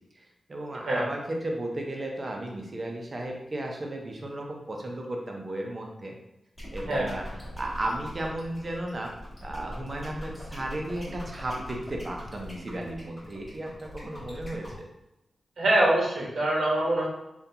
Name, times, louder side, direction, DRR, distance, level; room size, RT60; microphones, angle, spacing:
voice 1, 0.2-6.1 6.7-9.1 9.4-14.7, right 1 dB, 30° right, 1 dB, 0.5 m, -34 dB
sound 1, 6.6-14.8, equal, 15° left, 1.0 m, -41 dB
voice 2, 15.6-17.1, right 1 dB, 80° right, -4 dB, 0.8 m, -24 dB
3.7 x 2.2 x 2.7 m, 0.91 s
wide cardioid pair, 165°, 0 cm